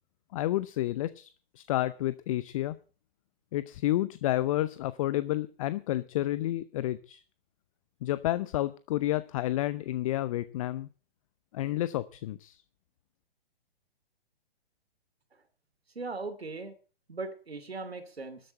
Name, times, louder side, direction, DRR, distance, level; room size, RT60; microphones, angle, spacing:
voice 1, 0.3-1.3 1.6-2.8 3.5-7.2 8.0-10.9 11.5-12.6, left 15 dB, 35° left, 17 dB, 0.6 m, -30 dB
voice 2, 15.9-16.7 17.1-18.4, right 3 dB, 85° right, 10 dB, 2.8 m, -38 dB
13.0 x 8.1 x 8.9 m, 0.39 s
figure-of-eight pair, 125°, 30 cm